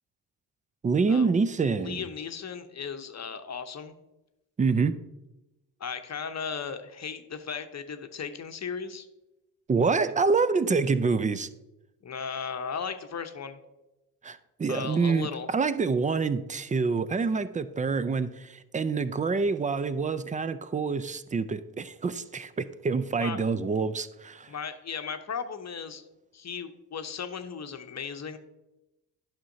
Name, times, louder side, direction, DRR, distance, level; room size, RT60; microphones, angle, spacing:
voice 1, 0.8-2.1 4.6-5.0 9.7-11.5 14.2-24.5, right 4 dB, 20° right, 15 dB, 0.4 m, -26 dB
voice 2, 1.7-3.9 5.8-9.1 12.0-13.6 14.7-15.5 23.2-23.4 24.5-26.0 26.3-28.4, left 6 dB, 35° left, 8 dB, 0.9 m, -36 dB
11.0 x 5.7 x 2.7 m, 0.99 s
hypercardioid pair, 45°, 47 cm